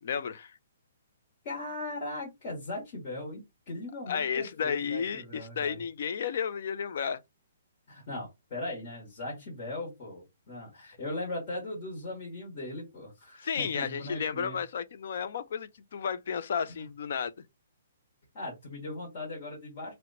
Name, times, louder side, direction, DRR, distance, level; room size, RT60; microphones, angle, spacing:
voice 1, 0.0-0.5 4.1-7.2 13.4-17.3, left 7 dB, 45° left, 0.3 m, -32 dB
voice 2, 1.4-5.8 7.9-14.6 16.8-16.9 18.3-19.9, left 2 dB, 25° left, 1.0 m, -39 dB
2.8 x 2.1 x 3.8 m
hypercardioid pair, 180°, 0 cm